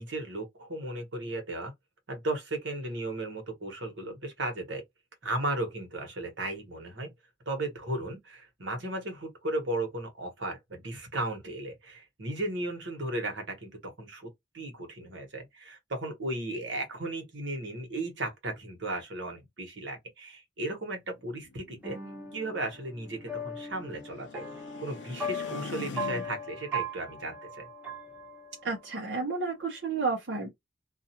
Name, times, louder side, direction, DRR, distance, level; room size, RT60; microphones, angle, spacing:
voice 1, 0.0-1.7 2.1-4.8 5.2-7.1 7.5-14.3 14.5-22.0 22.3-24.4 24.8-27.6, right 2 dB, 80° right, 1.1 m, -35 dB
sound 1, 21.2-26.6, left 3 dB, 75° left, 0.5 m, -45 dB
sound 2, 21.8-28.8, equal, 10° right, 0.8 m, -38 dB
voice 2, 28.6-30.5, right 4 dB, 65° right, 0.7 m, -31 dB
2.4 x 2.3 x 2.8 m
head